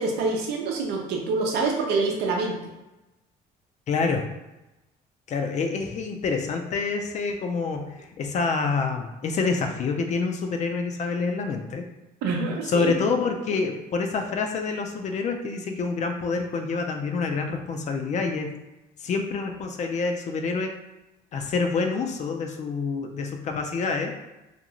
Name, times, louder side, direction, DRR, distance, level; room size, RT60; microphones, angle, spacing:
voice 1, 0.0-2.6 12.2-12.9, right 3 dB, 85° right, 1 dB, 0.6 m, -26 dB
voice 2, 3.9-4.3 5.3-11.8 12.7-18.5 19.0-20.7 21.3-24.1, left 4 dB, 45° left, 4 dB, 0.4 m, -27 dB
2.5 x 2.3 x 2.9 m, 0.99 s
cardioid pair, 110°, 17 cm